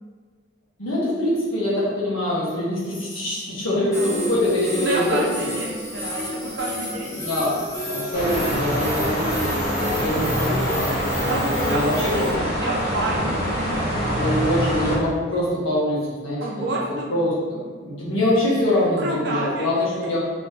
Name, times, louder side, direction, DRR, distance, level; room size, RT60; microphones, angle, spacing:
voice 1, 0.8-5.2 7.1-12.5 13.2-13.3 14.2-16.7 17.1-20.2, left 1 dB, 85° left, -7 dB, 1.2 m, -24 dB
voice 2, 3.7-4.1 4.8-7.1 11.3-14.3 16.4-17.1 19.0-19.7, right 2 dB, 60° right, -1 dB, 0.6 m, -29 dB
sound 1, 3.9-12.3, equal, 15° left, 0.8 m, -31 dB
sound 2, 8.1-15.0, equal, 50° left, 1.3 m, -25 dB
3.5 x 3.1 x 2.8 m, 1.5 s
head